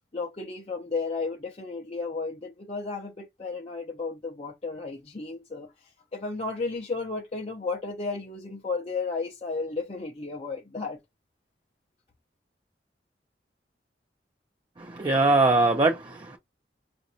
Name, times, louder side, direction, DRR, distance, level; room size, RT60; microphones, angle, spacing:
voice 1, 0.1-5.7 6.1-11.0, left 4 dB, 35° left, 0.6 m, -33 dB
voice 2, 14.8-16.4, right 2 dB, 25° right, 0.5 m, -22 dB
5.1 x 2.6 x 2.7 m
head